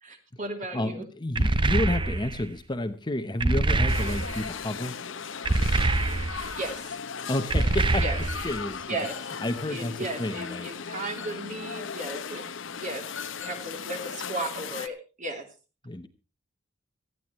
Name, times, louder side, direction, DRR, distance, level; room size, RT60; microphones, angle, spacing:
voice 1, 0.0-1.1 6.5-6.9 8.0-8.2 8.9-9.3 9.7-13.0 13.4-15.5, right 2 dB, 40° right, 4 dB, 3.2 m, -35 dB
voice 2, 0.7-5.0 7.3-8.1 8.4-9.0 9.4-10.7 15.8-16.1, left 1 dB, 25° left, 9 dB, 1.0 m, -30 dB
sound 1, 1.4-2.4 3.4-4.5 5.5-6.5 7.5-8.6, right 2 dB, 25° right, 0.7 m, -25 dB
sound 2, 3.9-14.9, left 6 dB, 75° left, 0.9 m, -37 dB
18.5 x 14.0 x 3.1 m, 0.32 s
head